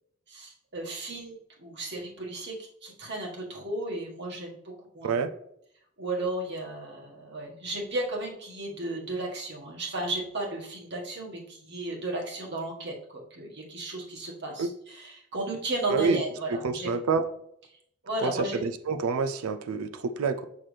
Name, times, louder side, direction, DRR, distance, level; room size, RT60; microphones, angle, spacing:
voice 1, 0.3-5.2 6.0-16.9 18.0-18.6, right 2 dB, 55° right, -1 dB, 1.6 m, -34 dB
voice 2, 15.9-16.2 16.6-17.3 18.2-20.4, right 4 dB, 80° right, 9 dB, 0.5 m, -27 dB
6.0 x 5.8 x 3.3 m, 0.71 s
head